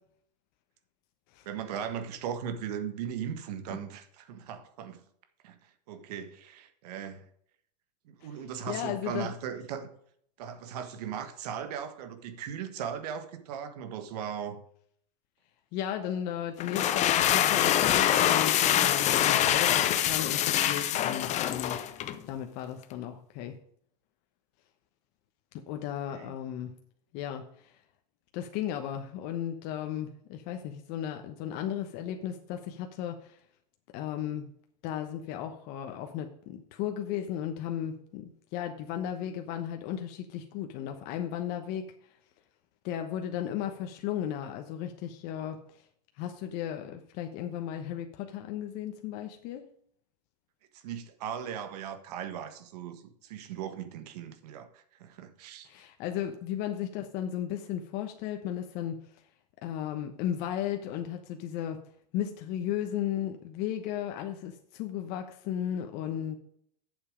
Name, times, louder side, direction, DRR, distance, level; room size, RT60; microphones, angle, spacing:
voice 1, 1.4-5.0 5.4-5.6 5.9-7.2 8.0-9.9 10.4-14.6 26.1-26.3 50.7-55.7, right 8 dB, 70° right, 1.5 m, -38 dB
voice 2, 8.7-9.3 15.7-23.6 25.7-26.8 27.1-27.8 28.3-33.4 33.9-34.5 34.8-42.2 42.8-45.9 46.1-49.7 55.6-59.2 59.6-61.8 62.1-66.4, left 10 dB, 50° left, 1.1 m, -35 dB
sound 1, 16.6-22.2, left 11 dB, 35° left, 0.7 m, -25 dB
8.4 x 7.3 x 5.1 m
supercardioid pair, 125°, 21 cm